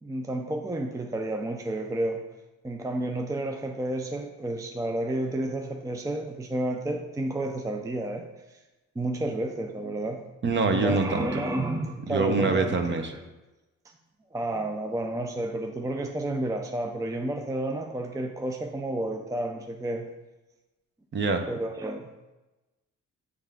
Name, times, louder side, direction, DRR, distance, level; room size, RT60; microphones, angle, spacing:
voice 1, 0.0-2.2 2.6-8.6 9.0-10.2 10.7-13.1 14.3-20.1 21.5-22.1, right 1 dB, 10° right, 4 dB, 0.4 m, -31 dB
voice 2, 10.4-11.3 12.1-13.1 21.1-21.4, right 3 dB, 40° right, 6 dB, 0.8 m, -25 dB
7.9 x 3.5 x 3.4 m, 1.1 s
cardioid pair, 90°, 30 cm